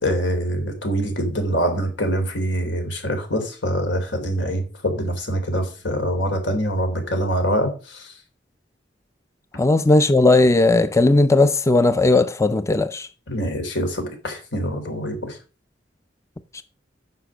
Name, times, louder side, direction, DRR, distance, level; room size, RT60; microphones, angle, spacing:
voice 1, 0.0-8.1 13.3-15.4, equal, 85° left, 3.4 m, -24 dB
voice 2, 9.6-13.1, left 2 dB, 15° left, 0.4 m, -16 dB
9.8 x 5.9 x 6.3 m
head